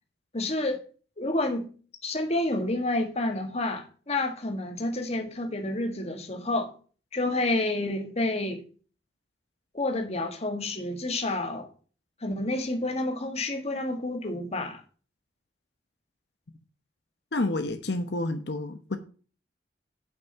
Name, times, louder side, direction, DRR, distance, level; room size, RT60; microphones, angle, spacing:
voice 1, 0.3-0.8 1.2-1.7 2.0-6.7 7.1-8.6 9.7-11.7 12.2-14.8, left 2 dB, 35° left, 1.7 m, -29 dB
voice 2, 17.3-19.0, left 2 dB, 70° left, 0.9 m, -29 dB
8.5 x 6.0 x 5.6 m
head